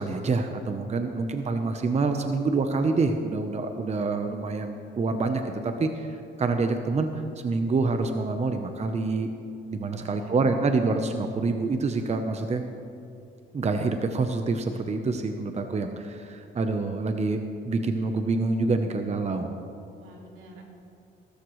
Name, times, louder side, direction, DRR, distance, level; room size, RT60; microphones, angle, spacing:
voice 1, 0.0-7.1 7.4-9.3 9.7-12.6 13.5-19.5, right 3 dB, 35° right, 6 dB, 0.9 m, -27 dB
voice 2, 9.8-10.7 19.9-20.6, right 1 dB, 85° right, -1 dB, 2.6 m, -48 dB
19.0 x 13.0 x 3.2 m, 2.5 s
cardioid pair, 90°, 20 cm